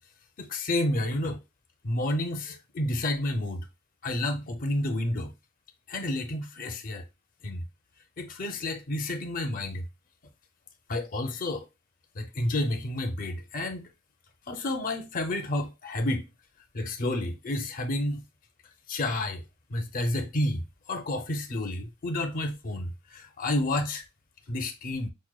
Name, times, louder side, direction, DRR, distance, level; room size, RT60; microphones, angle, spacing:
voice 1, 0.4-1.4 1.8-3.7 4.0-5.3 5.9-7.0 7.4-7.6 8.2-9.9 10.9-11.7 12.2-13.9 14.5-16.2 16.7-18.2 18.9-19.4 19.7-24.0 24.5-25.1, left 1 dB, 40° left, 0.5 m, -30 dB
6.0 x 2.2 x 2.3 m
head